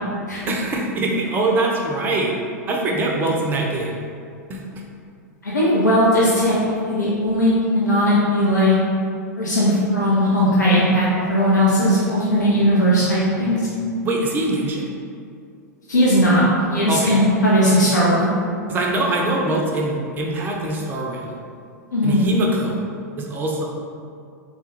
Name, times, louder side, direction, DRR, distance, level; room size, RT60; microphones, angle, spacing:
voice 1, 0.5-2.3 2.7-4.0 4.5-4.8 14.0-14.9 16.9-17.2 18.7-21.4 22.0-22.8 23.2-23.7, right 2 dB, 20° right, 0 dB, 0.4 m, -23 dB
voice 2, 5.4-8.7 9.4-13.6 15.9-16.4 16.7-18.3 21.9-22.2, equal, 80° left, -8 dB, 0.5 m, -18 dB
3.3 x 2.3 x 2.9 m, 2.3 s
figure-of-eight pair, 95°, 9 cm